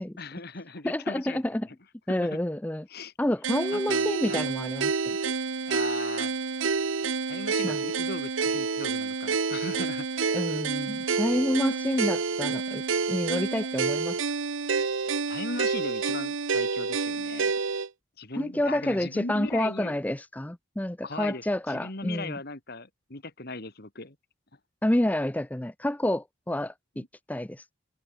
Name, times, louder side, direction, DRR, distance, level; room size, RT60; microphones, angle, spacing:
voice 1, 0.2-1.7 2.1-2.4 2.9-3.1 3.7-4.5 5.7-6.3 7.3-10.4 15.3-17.5 18.2-20.0 21.0-24.2 27.0-27.1, left 3 dB, 50° left, 2.2 m, -38 dB
voice 2, 0.8-1.7 2.1-2.9 3.2-5.2 7.6-7.8 10.3-12.8 13.1-14.2 18.4-22.4 24.8-27.7, left 1 dB, 5° left, 0.5 m, -29 dB
sound 1, 3.4-17.9, right 4 dB, 65° right, 0.9 m, -28 dB
head